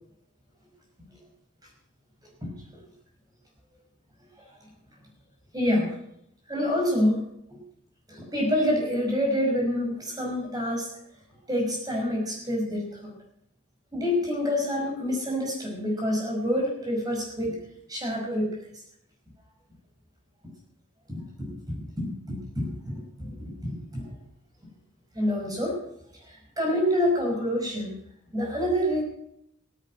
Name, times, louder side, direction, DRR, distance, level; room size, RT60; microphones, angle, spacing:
voice 1, 5.5-6.0 6.5-7.2 7.5-7.6 8.1-10.9 11.5-13.1 13.9-17.6 17.9-18.5 21.1-21.2 22.0-24.0 25.1-25.8 26.2-27.9 28.3-29.0, left 1 dB, 20° right, -1 dB, 5.4 m, -27 dB
16.5 x 10.0 x 6.3 m, 0.72 s
head